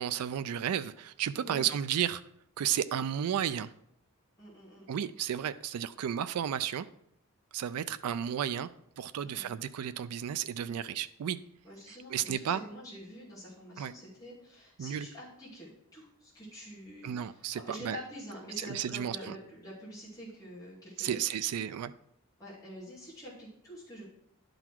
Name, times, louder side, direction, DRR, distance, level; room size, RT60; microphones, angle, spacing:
voice 1, 0.0-2.2 2.6-3.7 4.9-6.9 7.5-8.7 9.0-11.4 11.9-12.6 13.8-13.9 14.8-15.1 17.0-18.0 18.6-19.4 21.0-21.9, right 9 dB, 90° right, 13 dB, 0.4 m, -33 dB
voice 2, 1.4-1.7 4.4-4.9 9.2-9.6 10.7-10.8 11.6-21.4 22.4-24.0, equal, 15° left, -8 dB, 2.3 m, -47 dB
11.0 x 3.9 x 4.5 m, 0.74 s
head